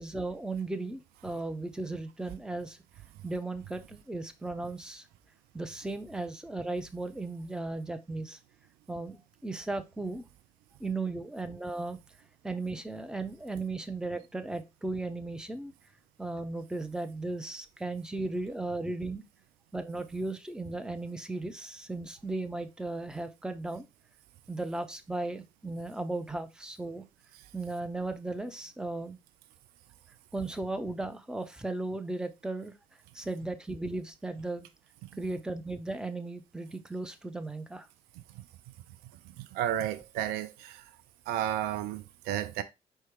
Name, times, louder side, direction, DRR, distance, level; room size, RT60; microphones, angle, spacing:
voice 1, 0.0-2.8 3.2-5.0 5.5-8.4 8.9-10.2 10.8-12.0 12.4-15.7 16.2-19.2 19.7-23.9 24.5-27.0 27.5-29.2 30.3-32.7 33.1-34.7 35.2-37.9, right 2 dB, 5° right, 0.6 m, -36 dB
voice 2, 39.2-40.9 41.3-42.6, right 11 dB, 65° right, 0.4 m, -33 dB
4.5 x 2.2 x 4.6 m
figure-of-eight pair, 45°, 18 cm